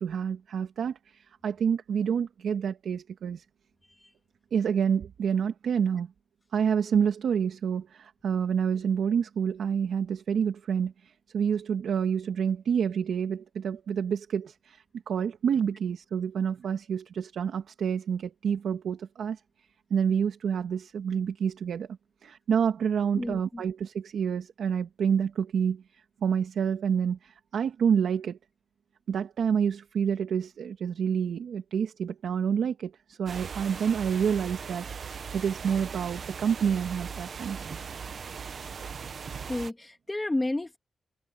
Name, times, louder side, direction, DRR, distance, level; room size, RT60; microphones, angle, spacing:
voice 1, 0.0-3.4 4.5-6.1 6.5-19.4 19.9-21.9 22.2-25.8 26.2-28.4 29.1-37.6, right 7 dB, 75° right, 1.7 m, -28 dB
voice 2, 23.2-23.6 39.5-40.8, left 2 dB, 15° left, 2.6 m, -31 dB
sound 1, 33.3-39.7, right 6 dB, 50° right, 1.1 m, -39 dB
wide cardioid pair, 150°, 0 cm